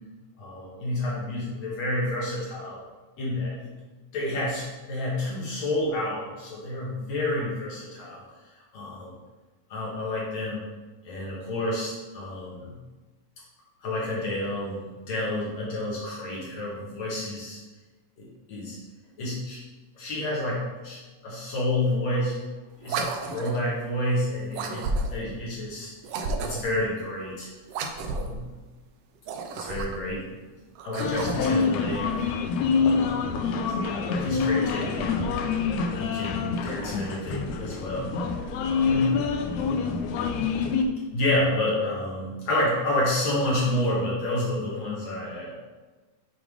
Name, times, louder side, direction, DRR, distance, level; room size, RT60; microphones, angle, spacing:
voice 1, 0.4-2.8 3.2-3.7 4.1-8.2 8.7-9.1 9.7-10.6 11.0-12.8 13.8-17.6 18.2-18.8 19.2-19.6 20.0-22.4 22.8-25.9 26.4-27.5 28.0-28.5 29.6-30.3 30.8-32.3 32.7-33.3 33.9-35.3 35.6-38.2 38.6-39.2 41.1-45.5, left 1 dB, 60° left, -5 dB, 2.6 m, -29 dB
sound 1, 22.8-23.7 24.5-25.3 26.0-26.8 27.7-28.4 29.2-30.1 30.8-31.7, right 3 dB, 90° right, 1.4 m, -32 dB
sound 2, 31.0-40.8, left 5 dB, 80° left, 2.0 m, -26 dB
7.2 x 3.6 x 4.8 m, 1.2 s
omnidirectional pair, 3.5 m